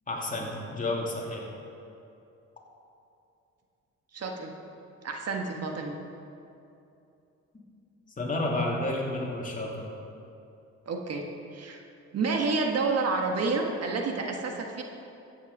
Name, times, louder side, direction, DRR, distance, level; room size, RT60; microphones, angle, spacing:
voice 1, 0.1-1.5 8.2-9.9, left 2 dB, 25° left, -2 dB, 2.7 m, -31 dB
voice 2, 4.1-4.5 5.0-6.0 10.9-11.3 11.5-11.8 12.1-14.8, right 3 dB, 55° right, 2 dB, 1.5 m, -29 dB
14.0 x 8.7 x 5.4 m, 2.7 s
cardioid pair, 90°, 30 cm